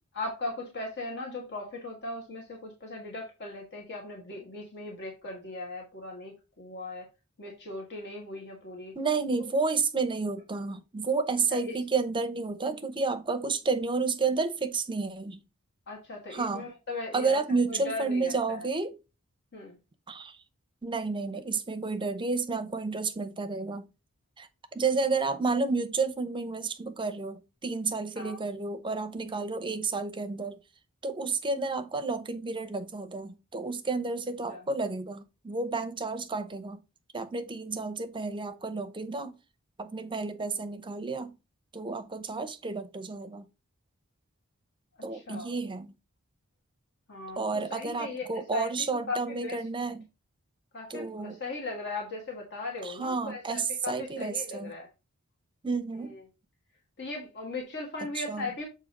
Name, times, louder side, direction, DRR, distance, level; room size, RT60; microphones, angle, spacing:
voice 1, 0.1-7.1 7.4-8.9 11.6-11.7 15.9-17.4 17.7-18.7 19.5-19.8 28.1-28.4 34.5-34.6 45.1-45.5 47.1-47.4 47.7-48.7 49.1-49.2 49.4-49.6 50.7-54.9 56.0-56.2 57.0-58.7, left 2 dB, 55° left, 1.6 m, -38 dB
voice 2, 9.0-15.4 16.3-16.6 17.1-18.9 20.1-20.4 20.8-23.8 24.4-24.5 24.7-30.6 31.0-36.8 37.1-39.3 39.8-41.3 41.7-43.4 45.0-45.9 47.4-50.1 50.9-51.4 52.8-54.7 55.6-56.1 58.2-58.5, right 4 dB, 20° right, 0.7 m, -31 dB
7.2 x 2.8 x 5.2 m
head